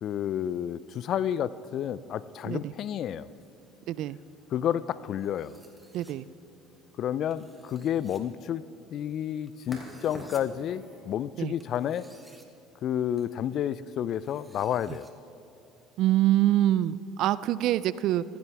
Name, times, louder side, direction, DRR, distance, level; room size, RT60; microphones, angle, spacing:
voice 1, 0.0-3.3 4.5-5.6 7.0-8.6 8.9-12.1 12.8-15.1, left 10 dB, 55° left, 18 dB, 0.4 m, -30 dB
sound 1, 2.4-11.2, left 1 dB, 25° left, 3.9 m, -52 dB
voice 2, 3.9-4.2 5.9-6.2 11.4-11.5 16.0-18.2, right 13 dB, 60° right, 18 dB, 0.3 m, -25 dB
sound 2, 5.2-6.1 7.3-8.2 9.5-10.4 11.6-12.5 13.2-13.3 14.1-15.1, right 2 dB, 10° right, 1.6 m, -57 dB
15.5 x 14.5 x 3.5 m, 2.7 s
hypercardioid pair, 70°, 0 cm